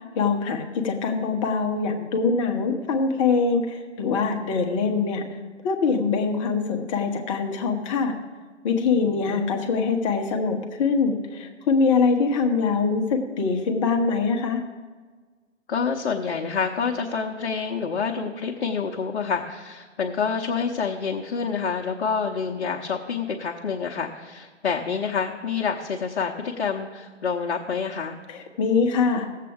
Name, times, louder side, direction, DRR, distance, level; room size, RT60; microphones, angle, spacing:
voice 1, 0.1-5.2 5.6-8.1 8.6-14.6 28.3-29.3, left 4 dB, 25° left, 3 dB, 1.0 m, -23 dB
voice 2, 9.0-9.4 15.7-28.2, left 5 dB, 55° left, 1 dB, 0.9 m, -27 dB
16.5 x 7.5 x 3.6 m, 1.4 s
hypercardioid pair, 145°, 37 cm